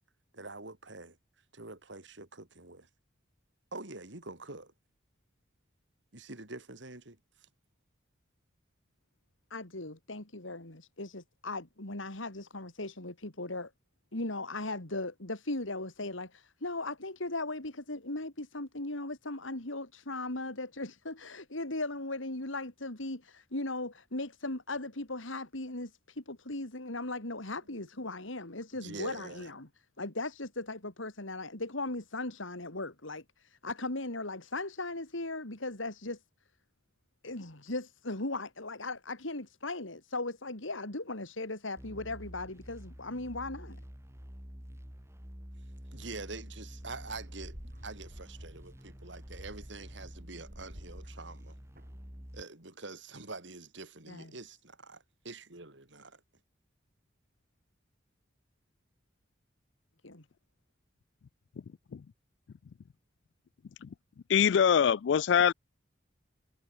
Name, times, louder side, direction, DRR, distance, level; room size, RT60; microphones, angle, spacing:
voice 1, 0.3-1.2 1.5-2.9 3.7-4.7 6.1-7.2 28.7-29.5 45.9-47.6 47.8-51.6 52.3-56.2, right 3 dB, 70° right, 3.2 m, -45 dB
voice 2, 9.5-13.7 14.1-29.7 30.0-36.2 37.2-43.8 54.1-54.3 60.0-60.2, left 2 dB, 85° left, 3.7 m, -38 dB
sound 1, 41.8-52.4, equal, 15° right, 3.3 m, -48 dB
sound 2, 46.8-52.3, equal, 45° right, 4.7 m, -53 dB
voice 3, 64.3-65.5, left 8 dB, 65° left, 0.3 m, -24 dB
head